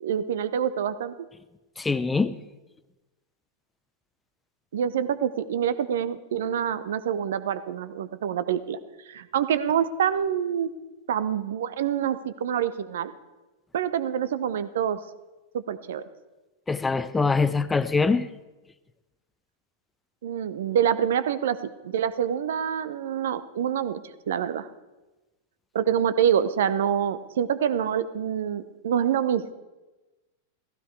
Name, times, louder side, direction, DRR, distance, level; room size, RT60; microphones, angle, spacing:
voice 1, 0.0-1.1 4.7-8.8 9.1-10.7 11.1-13.1 13.7-15.0 15.5-16.0 20.2-24.0 24.3-24.7 25.7-29.5, right 9 dB, 60° right, 14 dB, 0.8 m, -26 dB
voice 2, 1.8-2.3 16.7-18.3, left 4 dB, 10° left, 14 dB, 0.7 m, -23 dB
15.5 x 15.5 x 4.7 m, 1.1 s
figure-of-eight pair, 90°, 0 cm